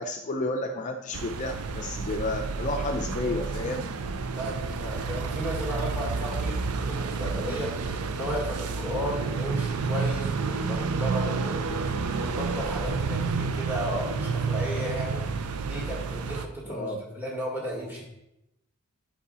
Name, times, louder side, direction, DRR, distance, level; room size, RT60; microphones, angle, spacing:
voice 1, 0.0-3.9 16.7-17.0, left 2 dB, 35° left, 4 dB, 0.5 m, -31 dB
sound 1, 1.1-16.4, right 4 dB, 80° right, 0.5 m, -30 dB
voice 2, 4.3-18.0, equal, 10° right, -2 dB, 1.9 m, -34 dB
8.6 x 5.5 x 4.2 m, 0.87 s
head